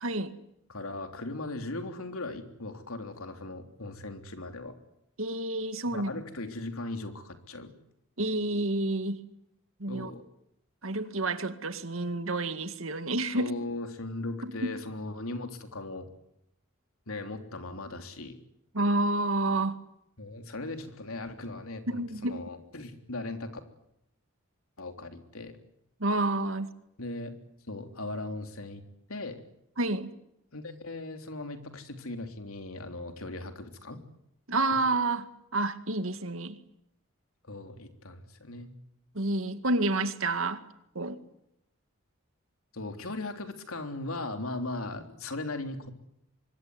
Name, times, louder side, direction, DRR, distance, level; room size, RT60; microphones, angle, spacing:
voice 1, 0.0-0.3 5.2-6.1 8.2-9.2 9.8-10.1 10.8-13.5 14.4-14.7 18.7-19.8 21.9-22.4 26.0-26.7 29.8-30.1 34.5-36.6 39.1-40.6 41.0-41.2, right 2 dB, 75° right, 10 dB, 2.1 m, -29 dB
voice 2, 0.7-4.8 5.9-7.7 9.9-10.2 13.3-16.1 17.1-18.4 20.2-23.5 24.8-25.6 27.0-27.3 27.7-28.8 29.1-29.4 30.5-34.0 37.5-38.7 42.7-45.9, left 2 dB, 90° left, 6 dB, 3.5 m, -38 dB
25.0 x 22.0 x 9.7 m, 0.79 s
head